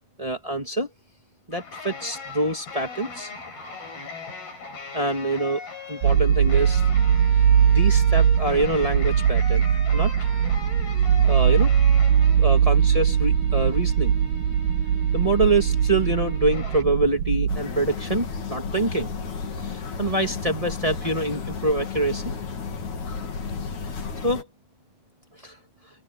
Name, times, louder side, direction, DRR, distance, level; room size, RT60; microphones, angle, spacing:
voice 1, 0.2-0.9 1.5-3.3 4.9-6.8 7.7-9.6 9.9-10.1 11.3-11.7 12.4-14.1 15.1-19.1 19.6-22.2 24.2-24.4 25.4-25.6, right 2 dB, 15° right, 1.5 m, -25 dB
sound 1, 1.5-16.8, left 2 dB, 85° left, 9.9 m, -39 dB
sound 2, 6.0-17.6, right 8 dB, 75° right, 3.1 m, -20 dB
sound 3, 17.5-24.4, left 5 dB, 50° left, 4.3 m, -33 dB
open air
omnidirectional pair, 4.3 m